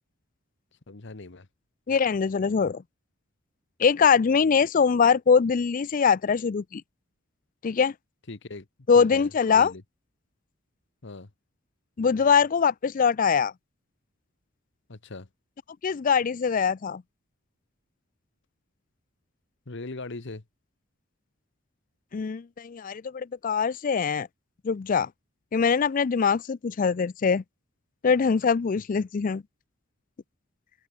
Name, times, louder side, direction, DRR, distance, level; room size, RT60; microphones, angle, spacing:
voice 1, 0.9-1.5 8.3-8.7 8.9-9.8 11.0-11.3 14.9-15.3 19.7-20.4 28.7-28.8, left 2 dB, 60° left, 1.2 m, -40 dB
voice 2, 1.9-2.8 3.8-6.8 7.6-7.9 8.9-9.7 12.0-13.5 15.8-17.0 22.1-24.3 24.6-25.1 25.5-27.4 28.0-29.4, left 6 dB, 40° left, 0.4 m, -23 dB
open air
head